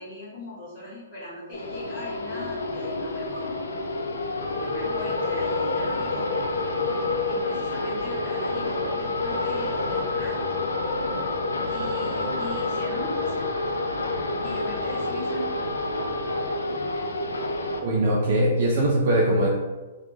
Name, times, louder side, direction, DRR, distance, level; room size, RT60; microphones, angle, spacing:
voice 1, 0.0-3.5 4.6-6.3 7.3-10.4 11.7-13.5 14.4-15.5, equal, 30° left, -12 dB, 1.1 m, -38 dB
sound 1, 1.5-17.8, left 2 dB, 80° left, 0.3 m, -28 dB
voice 2, 17.8-19.5, right 1 dB, 50° right, -5 dB, 0.5 m, -21 dB
2.3 x 2.0 x 3.1 m, 1.2 s
hypercardioid pair, 120°, 0 cm